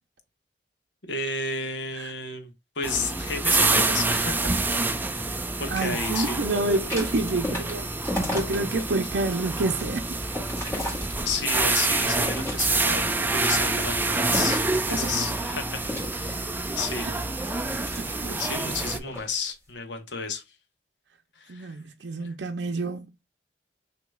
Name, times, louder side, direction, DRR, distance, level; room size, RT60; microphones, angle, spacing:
voice 1, 1.0-4.5 4.8-6.4 11.2-16.5 16.8-17.1 18.4-20.4 21.4-21.7 22.2-22.3, left 4 dB, 90° left, 1.1 m, -32 dB
sound 1, 2.8-19.0, right 3 dB, 10° right, 0.4 m, -27 dB
voice 2, 5.7-10.2 14.9-15.2 17.0-17.1 17.9-18.8 21.5-23.1, right 2 dB, 70° right, 0.6 m, -29 dB
sound 2, 6.6-8.8 9.3-11.6 12.1-13.0 13.5-14.8 15.8-18.5 19.0-19.3, left 1 dB, 15° left, 2.3 m, -34 dB
6.3 x 2.9 x 2.3 m
head